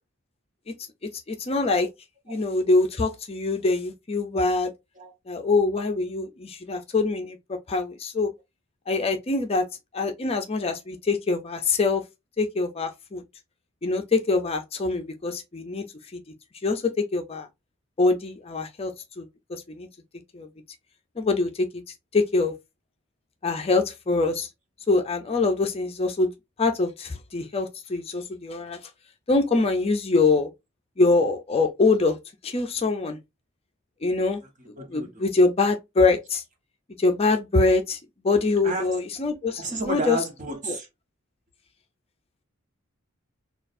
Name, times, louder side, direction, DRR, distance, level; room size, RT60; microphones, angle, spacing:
voice 1, 1.3-1.9 2.3-4.7 5.3-7.4 7.7-8.3 8.9-9.7 9.9-12.0 12.4-13.2 13.8-15.8 16.1-16.2 16.6-17.5 18.0-19.9 20.3-20.5 21.2-21.7 22.1-22.5 23.4-24.5 24.9-26.3 26.6-28.8 29.3-30.5 31.0-32.2 32.4-33.2 34.0-34.4 34.9-36.4 37.0-38.0 38.2-40.2, left 3 dB, 30° left, 0.5 m, -24 dB
voice 2, 34.6-35.2 38.6-39.0 39.6-40.9, right 2 dB, 40° right, 1.2 m, -32 dB
6.1 x 2.4 x 2.6 m
head